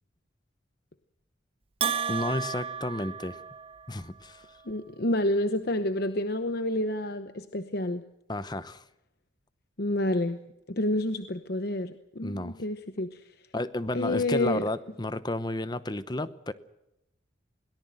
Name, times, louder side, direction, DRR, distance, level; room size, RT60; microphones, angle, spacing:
Bell, 1.8-4.0, right 7 dB, 30° right, 0.7 m, -32 dB
voice 1, 2.1-3.4 3.9-4.5 8.3-8.8 12.2-12.6 13.5-16.5, left 1 dB, 20° left, 14 dB, 0.9 m, -32 dB
voice 2, 4.7-8.0 9.8-10.4 10.7-13.2 13.9-14.6, left 1 dB, 50° left, 9 dB, 1.0 m, -29 dB
22.5 x 18.0 x 7.8 m, 0.85 s
head